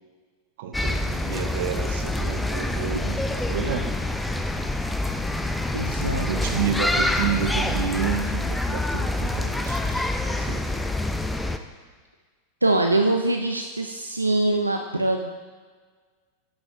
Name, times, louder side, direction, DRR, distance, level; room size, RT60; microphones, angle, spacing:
voice 1, 0.6-3.2 3.5-4.0 6.3-10.7, right 7 dB, 60° right, 6 dB, 0.7 m, -30 dB
sound 1, 0.7-11.6, left 1 dB, 5° left, 0.4 m, -26 dB
voice 2, 5.7-6.6 12.6-15.3, right 2 dB, 90° right, 3 dB, 0.4 m, -23 dB
11.0 x 6.0 x 2.6 m, 1.5 s
figure-of-eight pair, 90°, 0 cm